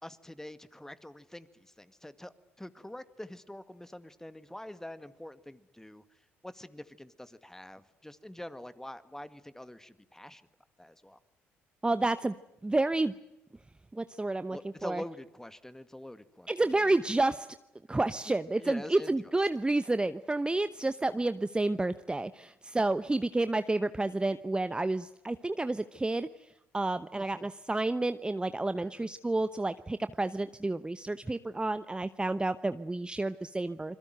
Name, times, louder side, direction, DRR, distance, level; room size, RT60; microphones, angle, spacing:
voice 1, 0.0-6.0 6.4-10.4 10.8-11.2 14.5-16.9 18.6-19.3 27.1-27.5 28.8-29.1, left 1 dB, 10° left, 12 dB, 2.0 m, -45 dB
voice 2, 11.8-12.3 12.6-13.1 13.9-15.0 16.5-17.5 17.9-26.3 26.7-34.0, right 2 dB, 15° right, 12 dB, 0.9 m, -30 dB
27.5 x 22.0 x 7.9 m, 0.89 s
hypercardioid pair, 55°, 6 cm